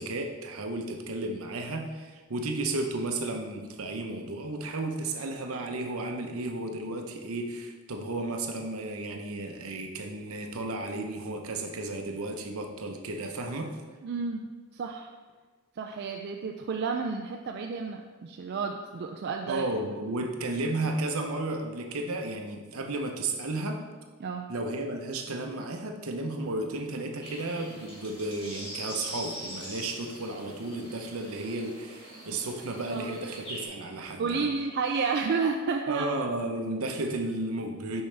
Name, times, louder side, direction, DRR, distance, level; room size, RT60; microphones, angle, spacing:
voice 1, 0.0-13.7 19.5-23.8 24.5-34.5 35.9-38.0, right 2 dB, 70° right, 3 dB, 0.8 m, -33 dB
voice 2, 14.0-14.4 14.7-15.1 15.8-19.6 24.2-24.5 32.9-33.1 34.2-36.1, right 5 dB, 50° right, 2 dB, 0.3 m, -31 dB
sound 1, 27.2-33.6, equal, 25° left, 1.9 m, -43 dB
6.8 x 5.4 x 3.3 m, 1.4 s
head